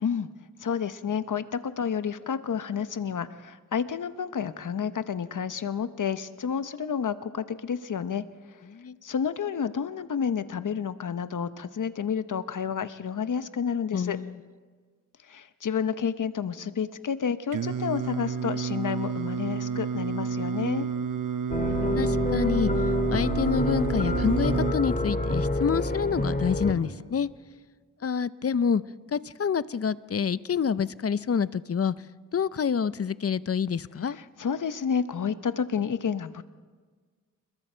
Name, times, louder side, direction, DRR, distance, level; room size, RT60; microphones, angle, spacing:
voice 1, 0.6-8.2 9.0-14.2 15.3-20.9 34.1-36.4, left 7 dB, 70° left, 12 dB, 0.9 m, -30 dB
voice 2, 13.9-14.4 21.7-22.7 23.1-27.3 28.0-28.8 29.1-31.9 32.3-34.2, left 6 dB, 45° left, 16 dB, 0.6 m, -27 dB
Singing, 17.5-24.7, right 6 dB, 75° right, 0.9 m, -30 dB
sound 1, 21.5-26.7, left 1 dB, 25° left, 2.2 m, -27 dB
29.0 x 21.0 x 4.5 m, 1.5 s
cardioid pair, 60°, 32 cm